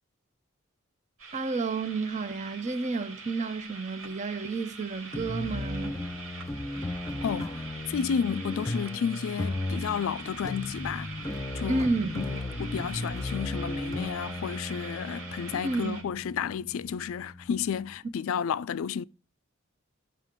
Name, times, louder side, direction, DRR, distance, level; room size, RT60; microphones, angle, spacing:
sound 1, 1.2-16.0, right 4 dB, 85° right, 3.3 m, -44 dB
voice 1, 1.3-6.0 11.7-12.1 15.5-16.0, right 3 dB, 35° right, 0.6 m, -31 dB
sound 2, 5.1-18.0, left 2 dB, 15° left, 0.7 m, -36 dB
voice 2, 7.2-7.5 7.9-11.1 11.5-11.9 12.1-19.0, left 7 dB, 75° left, 0.3 m, -32 dB
15.0 x 5.7 x 3.7 m
head